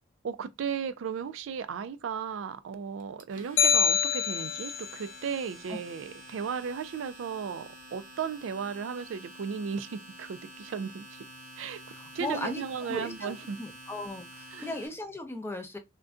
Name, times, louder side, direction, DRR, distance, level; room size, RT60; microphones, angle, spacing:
voice 1, 0.2-11.2 11.6-11.8 12.1-13.6 14.5-14.7, right 6 dB, 85° right, 0.4 m, -35 dB
Domestic sounds home sounds, 3.0-14.9, right 1 dB, 45° right, 0.7 m, -49 dB
sound 1, 3.6-4.9, left 7 dB, 85° left, 0.3 m, -25 dB
voice 2, 11.9-15.8, left 1 dB, 10° left, 0.4 m, -37 dB
2.5 x 2.2 x 3.5 m
head